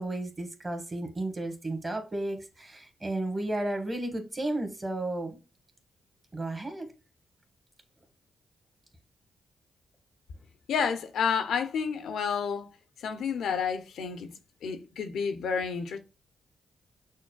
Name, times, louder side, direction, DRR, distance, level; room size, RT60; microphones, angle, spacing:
voice 1, 0.0-5.4 6.3-6.9, right 2 dB, 30° right, 1.3 m, -33 dB
voice 2, 10.7-12.7 13.0-14.3 14.6-16.0, left 6 dB, 80° left, 0.5 m, -30 dB
6.3 x 2.1 x 2.2 m
supercardioid pair, 55°, 0 cm